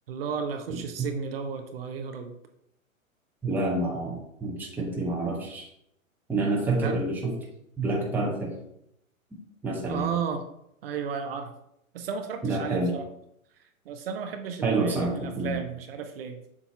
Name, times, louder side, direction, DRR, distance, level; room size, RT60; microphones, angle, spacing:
voice 1, 0.1-2.3 6.8-7.0 9.9-10.4 10.8-11.5 11.9-13.1 13.8-16.4, right 6 dB, 45° right, 5 dB, 0.8 m, -33 dB
voice 2, 3.4-5.7 6.3-7.3 7.8-8.5 9.6-10.1 12.4-12.9 14.6-15.6, right 2 dB, 5° right, -2 dB, 0.8 m, -28 dB
7.3 x 2.7 x 5.8 m, 0.77 s
hypercardioid pair, 130°, 42 cm